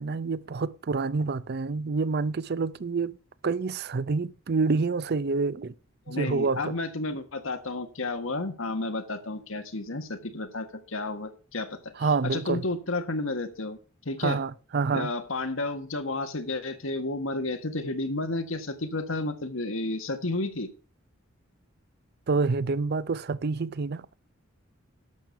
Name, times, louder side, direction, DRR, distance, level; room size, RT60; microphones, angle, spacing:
voice 1, 0.0-3.2 3.4-5.7 6.1-6.7 12.0-12.6 14.2-15.1 22.3-24.1, right 4 dB, 50° right, 0.5 m, -27 dB
voice 2, 6.1-13.8 14.0-14.4 14.9-20.7, left 2 dB, 70° left, 1.6 m, -32 dB
11.5 x 6.9 x 5.8 m
head